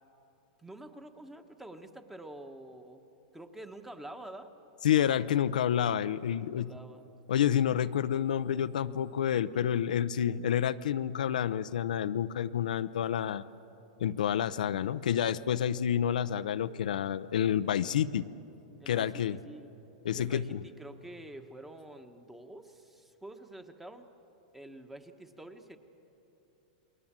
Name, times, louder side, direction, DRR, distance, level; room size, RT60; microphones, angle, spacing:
voice 1, 0.6-3.0 3.3-4.5 5.2-5.3 6.3-7.0 9.5-9.7 18.8-19.7 20.1-24.1 24.5-25.8, right 1 dB, 5° right, 7 dB, 1.2 m, -47 dB
voice 2, 4.8-6.7 7.3-13.4 14.0-18.3 18.9-19.4 20.0-20.6, left 9 dB, 90° left, 12 dB, 0.6 m, -29 dB
28.5 x 21.0 x 7.5 m, 3.0 s
supercardioid pair, 145°, 4 cm